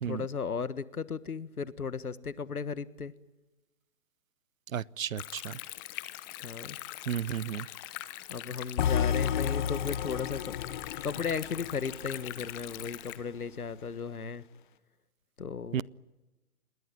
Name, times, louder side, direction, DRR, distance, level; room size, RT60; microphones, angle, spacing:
voice 1, 0.0-3.1 6.4-6.8 8.3-14.4 15.4-15.8, left 5 dB, 90° left, 15 dB, 1.6 m, -36 dB
voice 2, 4.7-5.6 7.1-7.7 15.7-15.8, right 9 dB, 65° right, 24 dB, 0.8 m, -33 dB
Stream, 5.2-13.2, left 17 dB, 15° left, 0.8 m, -42 dB
sound 1, 8.8-12.9, left 8 dB, 35° left, 1.2 m, -32 dB
28.0 x 21.0 x 9.1 m, 1.1 s
hypercardioid pair, 150°, 43 cm